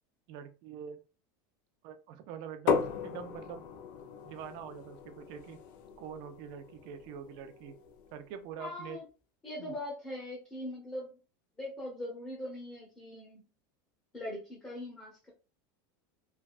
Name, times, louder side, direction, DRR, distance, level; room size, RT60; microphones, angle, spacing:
voice 1, 0.3-1.0 1.8-3.7 4.2-5.6 6.0-7.7 8.1-9.0 9.6-9.7, right 8 dB, 50° right, 9 dB, 0.5 m, -45 dB
sound 1, 2.7-8.3, left 6 dB, 65° left, 0.6 m, -37 dB
voice 2, 8.6-9.0 9.4-11.2 11.6-13.5 14.1-15.3, left 1 dB, 10° left, -3 dB, 0.9 m, -41 dB
3.3 x 2.3 x 2.4 m, 0.33 s
supercardioid pair, 160°, 11 cm